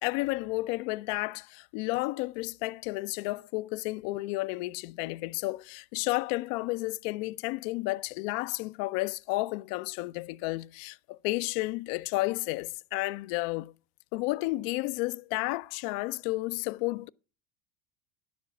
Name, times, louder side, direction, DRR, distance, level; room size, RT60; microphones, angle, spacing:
voice 1, 0.0-13.7 14.1-17.1, left 21 dB, 60° left, 0.6 m, -32 dB
10.5 x 7.3 x 5.8 m
hypercardioid pair, 90°, 44 cm